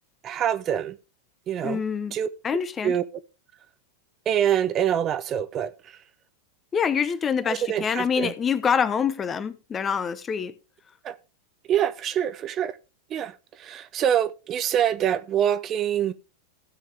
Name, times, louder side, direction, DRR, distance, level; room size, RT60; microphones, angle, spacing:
voice 1, 0.2-1.0 1.5-1.8 2.1-2.3 2.8-3.0 4.3-6.0 7.4-8.3 11.0-11.2 11.7-12.8 13.1-16.1, right 10 dB, 30° right, 0.6 m, -25 dB
voice 2, 1.6-2.2 2.4-2.9 6.7-10.5, left 7 dB, 20° left, 1.0 m, -25 dB
16.5 x 7.4 x 3.4 m
figure-of-eight pair, 90°, 0 cm